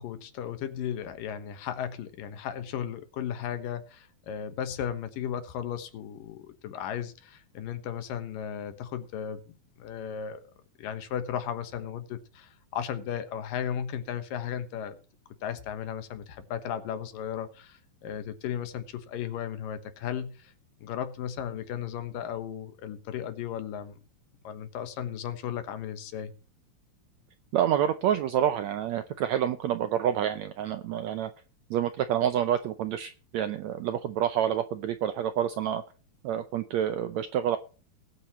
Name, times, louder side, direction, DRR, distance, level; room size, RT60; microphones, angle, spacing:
voice 1, 0.0-10.4 10.8-15.0 15.4-20.5 20.8-24.0 24.4-26.3, left 9 dB, 80° left, 10 dB, 2.9 m, -35 dB
voice 2, 27.5-31.3 31.7-35.8 36.2-37.6, right 10 dB, 80° right, 10 dB, 1.6 m, -28 dB
19.5 x 8.9 x 3.0 m, 0.36 s
omnidirectional pair, 4.0 m